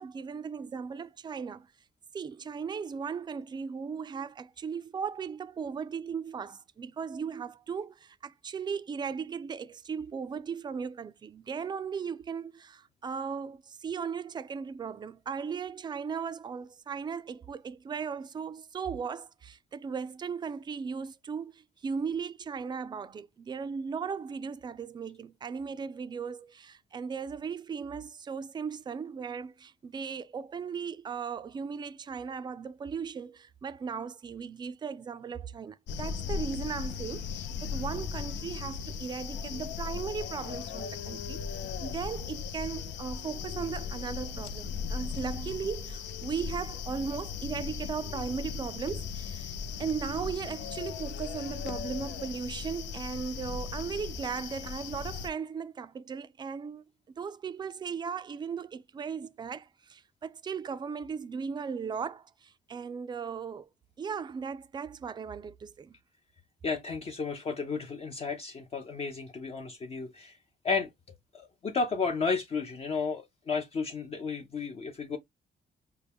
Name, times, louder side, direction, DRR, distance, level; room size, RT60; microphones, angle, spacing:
voice 1, 0.0-1.7 2.1-41.4 41.8-63.7 64.0-66.0, right 6 dB, 25° right, 0.3 m, -37 dB
sound 1, 35.9-55.3, left 6 dB, 85° left, 0.5 m, -37 dB
voice 2, 66.6-70.4 70.6-70.9 71.3-75.2, left 4 dB, 35° left, 0.5 m, -33 dB
5.5 x 2.2 x 3.4 m
cardioid pair, 145°, 18 cm